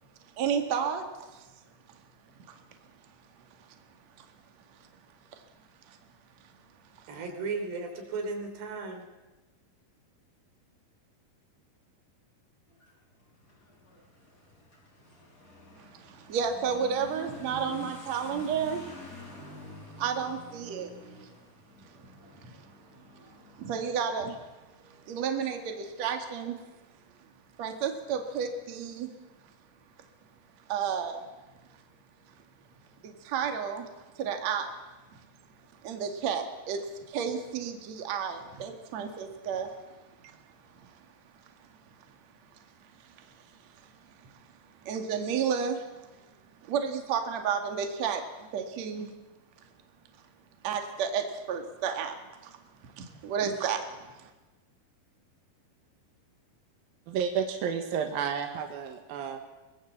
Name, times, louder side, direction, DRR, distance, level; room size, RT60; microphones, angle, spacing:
voice 1, 0.4-1.0 15.9-18.8 20.0-20.9 23.6-24.4 25.1-26.5 27.6-29.1 30.7-31.2 33.0-33.9 34.2-34.7 35.8-36.8 37.1-39.7 40.2-40.4 44.8-45.8 46.7-49.1 50.6-52.2 53.0-53.8, right 7 dB, 50° right, 5 dB, 2.8 m, -31 dB
voice 2, 7.1-9.1, right 4 dB, 90° right, 4 dB, 5.3 m, -35 dB
Motorcycle / Accelerating revving vroom, 12.7-25.0, left 1 dB, 20° left, 5.3 m, -49 dB
voice 3, 57.1-59.4, right 7 dB, 70° right, 4 dB, 3.0 m, -31 dB
23.5 x 19.0 x 7.4 m, 1.1 s
omnidirectional pair, 4.6 m